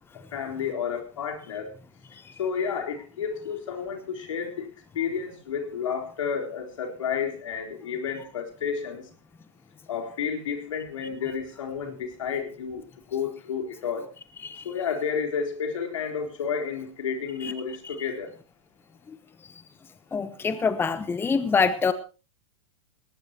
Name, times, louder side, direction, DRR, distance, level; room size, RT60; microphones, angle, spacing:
voice 1, 0.3-1.7 2.4-4.7 4.9-9.1 9.9-12.8 13.1-14.1 14.6-18.3, left 6 dB, 75° left, 2 dB, 4.2 m, -31 dB
voice 2, 20.1-21.9, left 5 dB, 15° left, 12 dB, 1.0 m, -25 dB
19.5 x 18.0 x 3.0 m, 0.34 s
hypercardioid pair, 110°, 16 cm